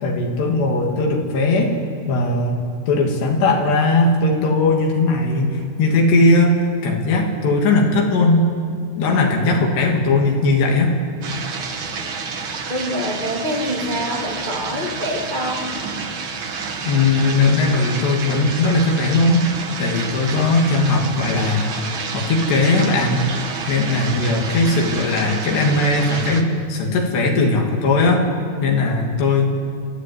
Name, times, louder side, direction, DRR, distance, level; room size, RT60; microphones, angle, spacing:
voice 1, 0.0-1.7 2.1-8.5 9.0-10.9 16.8-19.5 19.8-21.7 22.1-23.2 23.7-28.2 28.6-29.5, left 2 dB, 85° left, 1 dB, 4.6 m, -18 dB
sound 1, 11.2-26.4, right 5 dB, 65° right, 1.2 m, -29 dB
voice 2, 12.7-15.7, equal, 65° left, -1 dB, 0.4 m, -25 dB
28.0 x 13.0 x 9.6 m, 2.2 s
omnidirectional pair, 4.7 m